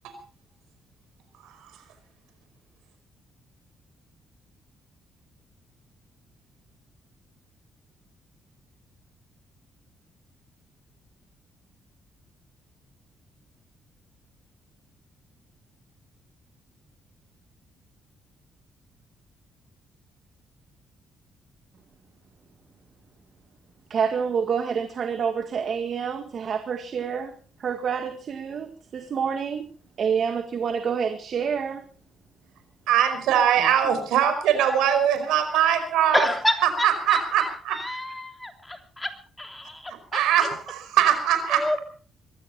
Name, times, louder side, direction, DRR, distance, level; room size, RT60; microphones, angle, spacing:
voice 1, 23.9-29.7 30.0-31.9, right 6 dB, 55° right, 8 dB, 1.9 m, -28 dB
voice 2, 32.9-36.3 36.8-37.8 39.9-41.8, right 9 dB, 90° right, 8 dB, 5.1 m, -22 dB
voice 3, 36.1-39.1 39.4-40.2 41.5-41.8, left 1 dB, 10° left, 5 dB, 3.2 m, -29 dB
22.5 x 15.5 x 4.3 m, 0.42 s
cardioid pair, 90°, 0 cm